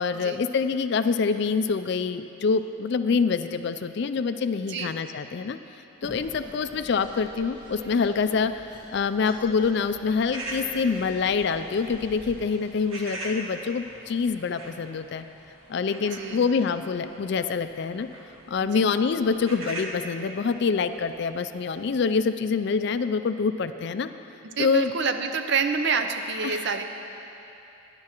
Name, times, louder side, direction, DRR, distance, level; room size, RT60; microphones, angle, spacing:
voice 1, 0.0-5.6 6.0-15.3 15.7-18.1 18.5-24.1 24.6-24.9 26.4-26.8, left 5 dB, 55° left, 10 dB, 0.3 m, -26 dB
sound 1, 6.0-12.4, equal, 20° right, 1.3 m, -46 dB
sound 2, 10.3-22.1, right 1 dB, 80° right, 1.3 m, -42 dB
voice 2, 16.0-16.5 18.6-18.8 24.6-26.8, right 5 dB, 55° right, 7 dB, 0.6 m, -28 dB
17.0 x 10.5 x 3.0 m, 2.9 s
head